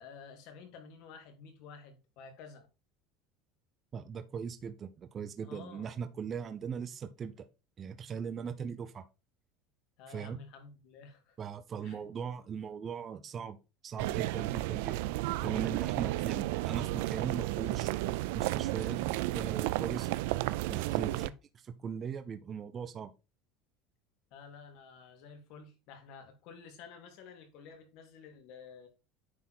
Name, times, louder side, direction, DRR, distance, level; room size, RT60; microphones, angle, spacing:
voice 1, 0.0-2.7 5.4-5.9 10.0-11.4 11.8-12.0 21.0-21.3 24.3-28.9, left 5 dB, 60° left, 2.4 m, -51 dB
voice 2, 3.9-7.3 7.8-9.0 10.1-10.4 11.4-13.6 13.8-17.9 18.3-19.0 19.3-20.1 20.7-21.3 21.8-23.1, right 7 dB, 25° right, 0.6 m, -39 dB
sound 1, 14.0-21.3, right 18 dB, 75° right, 0.4 m, -32 dB
9.6 x 3.7 x 4.3 m
cardioid pair, 160°, 0 cm